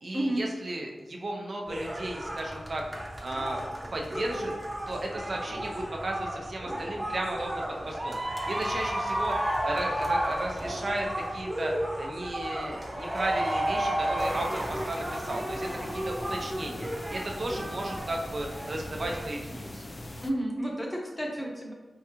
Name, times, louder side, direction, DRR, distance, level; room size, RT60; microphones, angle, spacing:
voice 1, 0.0-2.8 3.2-3.6 3.9-4.5 4.9-19.8, right 1 dB, 60° right, 0 dB, 0.6 m, -35 dB
sound 1, 1.7-19.2, right 1 dB, 15° right, 0.9 m, -33 dB
sound 2, 14.2-20.3, left 1 dB, 35° left, 0.4 m, -42 dB
voice 2, 20.2-21.7, right 1 dB, 15° left, -1 dB, 0.9 m, -31 dB
4.5 x 2.3 x 2.9 m, 1.2 s
cardioid pair, 55°, 0 cm